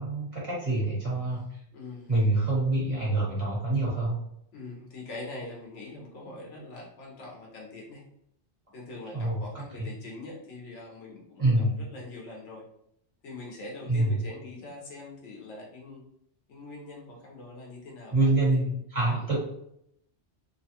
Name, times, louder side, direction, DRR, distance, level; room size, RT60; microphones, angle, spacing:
voice 1, 0.0-1.4 2.1-4.1 9.1-9.9 11.4-11.7 13.9-14.2 18.1-19.4, right 2 dB, 30° right, -6 dB, 1.4 m, -26 dB
voice 2, 1.7-2.2 4.5-8.0 8.7-12.6 13.2-16.0 16.5-18.6 19.1-19.3, left 2 dB, 85° left, -2 dB, 1.2 m, -43 dB
3.0 x 2.2 x 2.8 m, 0.74 s
omnidirectional pair, 1.2 m